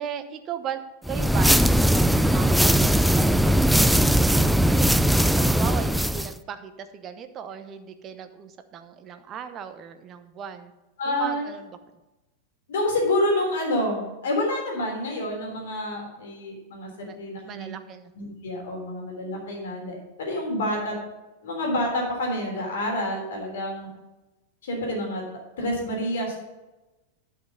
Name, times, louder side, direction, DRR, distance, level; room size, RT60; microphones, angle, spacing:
voice 1, 0.0-2.5 2.7-5.1 5.3-10.7 11.1-11.7 17.0-18.1, right 8 dB, 30° right, 9 dB, 1.0 m, -37 dB
sound 1, 1.1-6.3, right 1 dB, ahead, 0.3 m, -19 dB
voice 2, 11.0-11.4 12.7-16.9 17.2-17.7 18.2-20.9 21.4-23.9 24.6-25.2 25.6-26.3, left 1 dB, 60° left, 0 dB, 3.6 m, -28 dB
11.5 x 6.0 x 5.4 m, 1.0 s
figure-of-eight pair, 90°, 0 cm